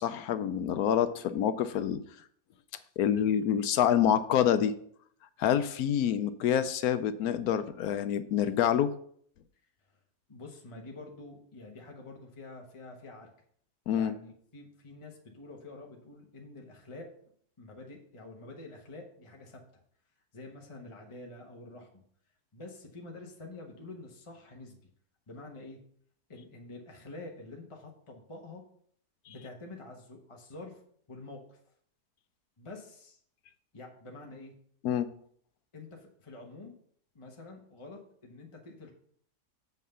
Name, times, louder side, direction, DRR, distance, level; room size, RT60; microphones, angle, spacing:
voice 1, 0.0-2.0 3.0-4.7 5.4-8.9 13.9-14.2 29.3-29.4 34.8-35.1, left 9 dB, 75° left, 12 dB, 1.0 m, -27 dB
voice 2, 10.3-13.3 13.9-17.1 17.6-19.6 20.3-22.0 22.5-24.8 25.3-25.8 26.3-28.6 29.3-30.8 31.1-31.6 32.6-33.2 33.7-34.5 35.7-36.7 37.1-38.9, left 2 dB, 20° left, 0 dB, 1.1 m, -47 dB
7.4 x 5.8 x 5.5 m, 0.62 s
omnidirectional pair, 1.7 m